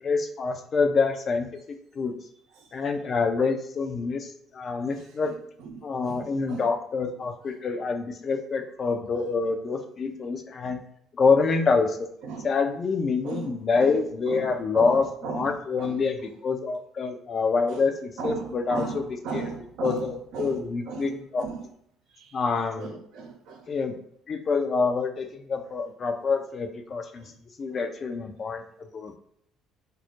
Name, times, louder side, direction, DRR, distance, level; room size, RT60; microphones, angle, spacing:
voice 1, 0.0-2.1 2.7-5.3 5.8-10.8 11.1-11.9 12.4-15.0 15.3-18.8 19.3-19.4 19.8-21.4 22.3-22.9 23.7-23.9 24.3-27.2 27.6-28.6 28.9-29.2, left 4 dB, 45° left, 0.4 m, -26 dB
voice 2, 4.8-6.7 9.1-9.3 11.7-11.8 12.2-12.6 13.2-16.0 17.7-17.9 18.2-21.7 22.1-22.5 22.8-23.7 27.2-27.4 27.7-27.9, right 5 dB, 65° right, 0.5 m, -37 dB
2.2 x 2.0 x 2.9 m
hypercardioid pair, 55°, 0 cm